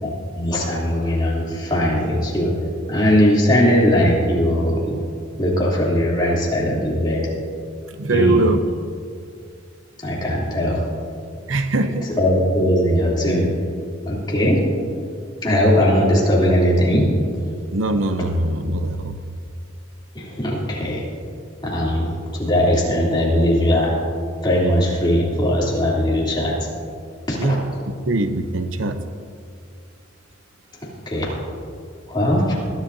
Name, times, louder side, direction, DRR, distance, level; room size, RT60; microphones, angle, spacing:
voice 1, 0.0-2.5 2.9-5.0 5.4-7.3 8.1-8.4 10.0-10.8 12.2-13.5 14.1-14.6 15.4-17.1 20.1-21.0 21.6-24.0 24.4-26.7 27.3-27.6 30.8-31.3 32.1-32.6, equal, 25° left, -6 dB, 3.1 m, -19 dB
voice 2, 8.0-8.6 11.5-12.1 17.7-19.1 27.4-27.7 28.1-29.0, right 2 dB, 85° right, 8 dB, 0.7 m, -21 dB
21.5 x 11.5 x 2.7 m, 2.3 s
head